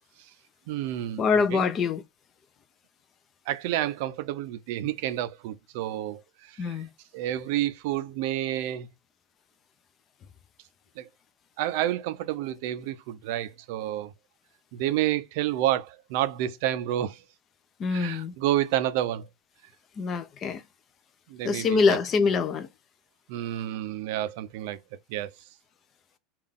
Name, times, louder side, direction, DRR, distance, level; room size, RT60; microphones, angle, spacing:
voice 1, 0.7-1.2 1.5-1.7 3.5-6.8 7.1-8.9 11.0-11.1 11.6-14.1 14.7-17.2 17.9-19.3 21.3-22.0 23.3-24.8 25.1-25.3, right 13 dB, 60° right, 0.4 m, -29 dB
voice 2, 1.2-2.0 6.6-6.9 17.8-18.4 20.0-20.6 21.4-22.7, left 5 dB, 25° left, 0.4 m, -24 dB
3.7 x 2.3 x 3.5 m
supercardioid pair, 160°, 0 cm